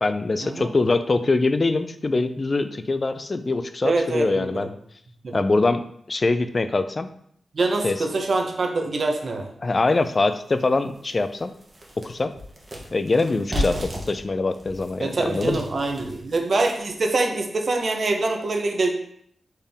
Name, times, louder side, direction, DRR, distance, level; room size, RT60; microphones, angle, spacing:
voice 1, 0.0-4.7 5.3-7.1 7.8-8.0 9.6-11.5 12.0-12.3 12.9-15.6, left 3 dB, 35° left, 10 dB, 0.3 m, -23 dB
voice 2, 3.8-4.7 5.2-5.4 7.5-9.5 13.5-13.8 15.0-18.9, right 3 dB, 55° right, 3 dB, 0.7 m, -25 dB
sound 1, 9.9-10.0 10.5-10.6 11.0-17.0, left 1 dB, 25° right, 1.0 m, -34 dB
4.4 x 3.5 x 3.4 m, 0.68 s
wide cardioid pair, 110°, 0 cm